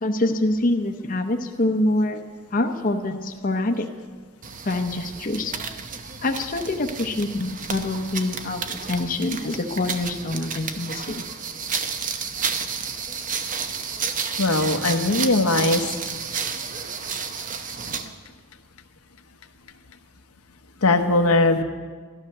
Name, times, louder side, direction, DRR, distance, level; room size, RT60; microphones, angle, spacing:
voice 1, 0.0-2.2 2.5-3.9 4.6-5.5 6.2-11.2, left 2 dB, 40° left, 4 dB, 0.8 m, -25 dB
sound 1, 4.4-18.1, right 6 dB, 40° right, 0.8 m, -31 dB
voice 2, 14.4-15.9 20.8-21.6, left 2 dB, 80° left, 5 dB, 1.1 m, -20 dB
13.0 x 12.5 x 6.6 m, 1.5 s
head